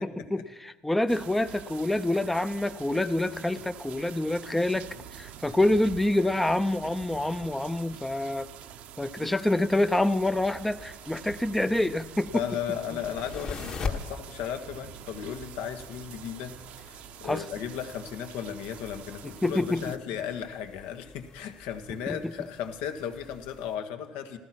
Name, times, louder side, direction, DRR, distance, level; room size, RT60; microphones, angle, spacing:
voice 1, 0.0-8.5 9.0-12.4 17.2-17.4 19.4-20.0 22.1-22.3, left 1 dB, 5° left, 11 dB, 0.5 m, -27 dB
sound 1, 1.1-20.0, right 10 dB, 65° right, 0.7 m, -46 dB
sound 2, 10.1-23.8, left 5 dB, 40° left, 1.4 m, -43 dB
voice 2, 12.3-24.4, left 9 dB, 85° left, 7 dB, 1.4 m, -35 dB
14.5 x 14.0 x 5.9 m, 1.2 s
cardioid pair, 125°, 2 cm